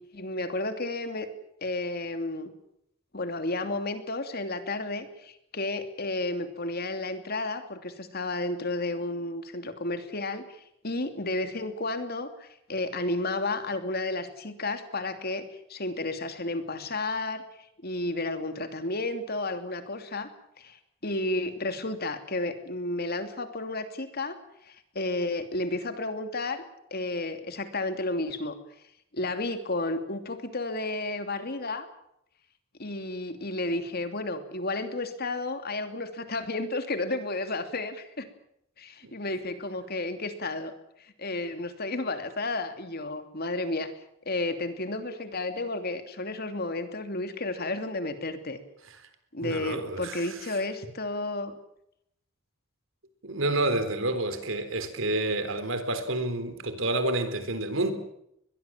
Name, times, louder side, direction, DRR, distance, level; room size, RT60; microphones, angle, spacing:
voice 1, 0.1-1.3 1.6-2.5 3.1-17.4 17.8-20.3 20.6-20.8 21.0-24.4 24.7-28.5 29.1-31.9 32.8-38.3 38.8-40.7 41.2-43.9 44.2-48.6 49.3-51.5, left 2 dB, 50° left, 2.9 m, -32 dB
voice 2, 49.4-50.6 53.2-57.9, right 2 dB, 70° right, 3.8 m, -29 dB
22.5 x 22.0 x 7.4 m
head